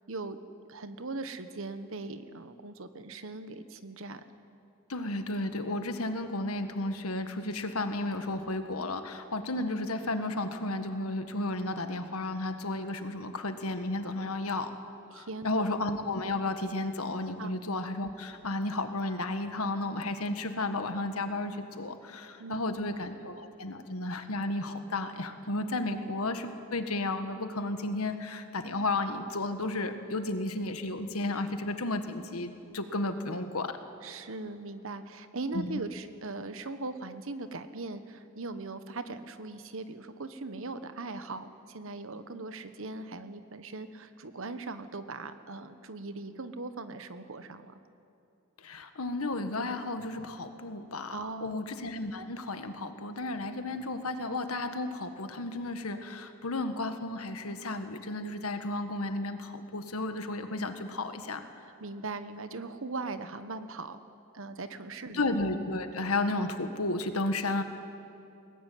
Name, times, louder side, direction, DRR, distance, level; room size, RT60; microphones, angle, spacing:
voice 1, 0.1-0.4 0.7-4.2 15.1-15.7 17.4-17.5 22.4-23.0 25.8-26.1 34.0-47.8 51.1-51.6 61.6-64.0 64.3-65.3, right 3 dB, 65° right, 10 dB, 1.2 m, -40 dB
voice 2, 4.9-14.7 15.1-33.8 35.5-35.9 48.6-61.4 65.1-67.6, left 2 dB, 90° left, 8 dB, 1.7 m, -33 dB
22.0 x 18.5 x 9.4 m, 2.6 s
head